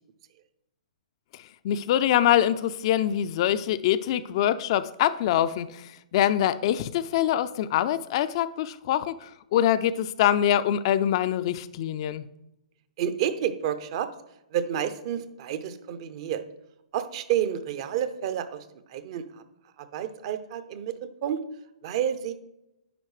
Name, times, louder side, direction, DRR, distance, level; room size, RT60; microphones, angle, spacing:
voice 1, 1.6-12.3, left 11 dB, 45° left, 13 dB, 0.3 m, -24 dB
voice 2, 13.0-14.1 14.5-16.4 16.9-18.6 18.9-19.4 19.8-21.0 21.2-21.4 21.8-22.3, right 9 dB, 45° right, 11 dB, 0.6 m, -29 dB
10.0 x 4.4 x 3.2 m, 0.88 s
figure-of-eight pair, 120°, 4 cm